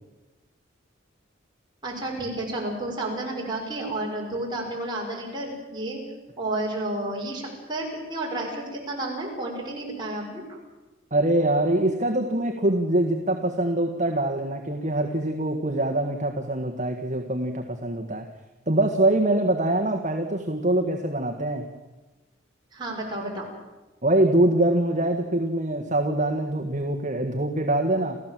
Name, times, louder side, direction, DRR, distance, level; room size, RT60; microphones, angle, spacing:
voice 1, 1.8-6.0 6.4-10.6 22.7-23.5, right 2 dB, 25° right, -2 dB, 6.1 m, -31 dB
voice 2, 11.1-18.3 18.7-21.6 24.0-28.2, right 1 dB, 40° right, 3 dB, 1.7 m, -24 dB
29.5 x 15.0 x 7.7 m, 1.1 s
head